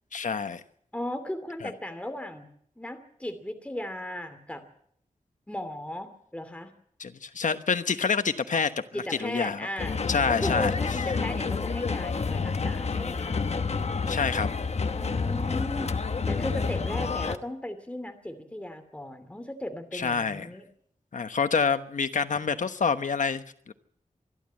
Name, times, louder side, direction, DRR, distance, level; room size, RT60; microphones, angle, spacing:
voice 1, 0.1-0.6 1.6-1.7 7.0-8.7 9.2-9.7 10.1-10.7 14.1-14.5 19.9-20.5 21.1-23.7, left 5 dB, 80° left, 1.2 m, -27 dB
voice 2, 0.9-2.5 2.8-4.6 5.5-6.7 8.9-10.0 10.3-13.4 14.9-16.0 16.3-20.7, left 1 dB, 10° left, 2.6 m, -36 dB
sound 1, 9.8-17.4, left 4 dB, 55° left, 1.0 m, -29 dB
26.5 x 11.5 x 8.8 m
wide cardioid pair, 120°, 13 cm